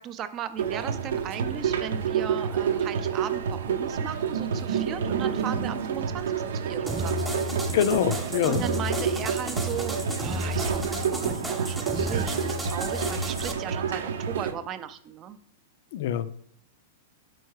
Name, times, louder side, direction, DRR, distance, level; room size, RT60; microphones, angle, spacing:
voice 1, 0.0-7.1 8.5-15.4, right 9 dB, 30° right, 11 dB, 0.5 m, -37 dB
sound 1, 0.6-14.5, right 7 dB, 80° right, 0.7 m, -29 dB
sound 2, 6.9-13.5, left 1 dB, 5° right, 0.9 m, -32 dB
voice 2, 7.7-8.6 15.9-16.4, left 10 dB, 60° left, 15 dB, 0.4 m, -25 dB
4.6 x 4.3 x 4.8 m, 0.64 s
hypercardioid pair, 135°, 0 cm